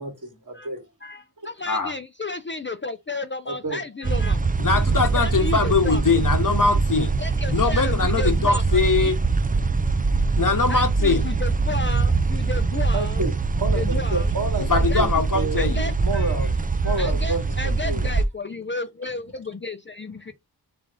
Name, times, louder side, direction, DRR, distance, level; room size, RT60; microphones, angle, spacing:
voice 1, 0.0-0.4 0.7-0.8 3.5-3.8 12.9-15.1 15.3-15.6 16.0-17.4 17.8-18.0, right 2 dB, 50° right, 1.9 m, -29 dB
voice 2, 1.0-4.5 5.2-6.0 7.2-9.1 10.7-13.3 13.6-14.3 14.7-15.1 15.6-16.5 16.8-20.3, left 3 dB, 30° left, 0.5 m, -33 dB
sound 1, 4.0-18.2, right 4 dB, 20° right, 0.4 m, -23 dB
voice 3, 4.6-7.2 7.5-9.2 10.4-11.2 14.7-15.9, left 4 dB, 55° left, 1.0 m, -22 dB
3.8 x 3.4 x 3.7 m
wide cardioid pair, 55°, 40 cm